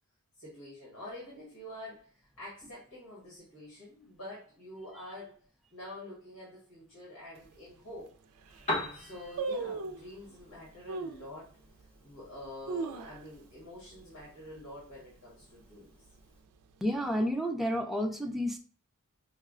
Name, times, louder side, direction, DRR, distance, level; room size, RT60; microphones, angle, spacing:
voice 1, 0.4-5.4 5.7-8.1 8.9-11.5 12.0-16.0, left 1 dB, 90° left, -6 dB, 1.6 m, -47 dB
sound 1, 7.4-7.5 8.1-8.2 8.4-8.8 9.4-10.1 10.9-11.3 11.8-11.9 12.4-13.6 13.9-14.0 14.3-14.7 15.1-15.4 16.0-16.8 17.1-17.2, right 3 dB, 85° right, 0.4 m, -37 dB
Piano, 8.4-16.4, left 1 dB, 30° left, 0.9 m, -44 dB
voice 2, 16.8-18.6, equal, ahead, 3 dB, 0.4 m, -31 dB
5.5 x 2.1 x 2.4 m, 0.43 s
head